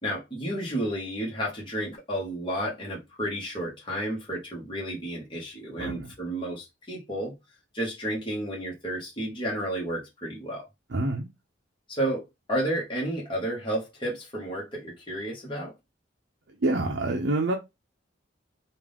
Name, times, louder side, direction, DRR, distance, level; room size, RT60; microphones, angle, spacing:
voice 1, 0.0-7.3 7.7-10.6 11.9-15.7, right 1 dB, 25° left, 1.6 m, -31 dB
voice 2, 5.8-6.1 10.9-11.3 16.6-17.6, right 2 dB, 65° right, 0.6 m, -27 dB
3.6 x 2.6 x 3.5 m
head